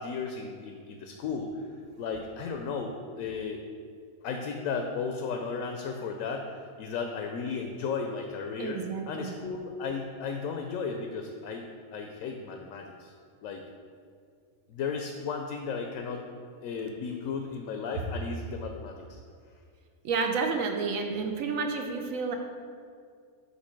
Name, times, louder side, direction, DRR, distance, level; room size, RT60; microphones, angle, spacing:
voice 1, 0.0-1.7 2.0-2.9 3.2-3.6 4.2-8.8 9.1-11.7 11.9-13.1 13.4-13.6 14.7-16.2 16.6-19.2, left 5 dB, 75° left, 3 dB, 1.0 m, -34 dB
voice 2, 8.6-9.4 20.0-22.4, right 4 dB, 75° right, 4 dB, 1.0 m, -30 dB
8.2 x 2.8 x 5.8 m, 2.2 s
omnidirectional pair, 1.5 m